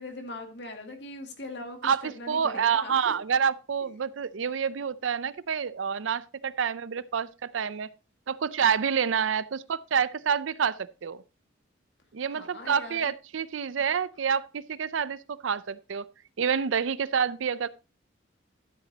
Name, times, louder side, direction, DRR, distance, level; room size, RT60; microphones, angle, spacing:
voice 1, 0.0-3.1 12.3-13.1, left 2 dB, 60° left, 2.1 m, -41 dB
voice 2, 1.8-7.9 8.3-11.2 12.1-16.1 16.4-17.7, right 7 dB, 85° right, 0.5 m, -28 dB
12.0 x 8.2 x 2.8 m
head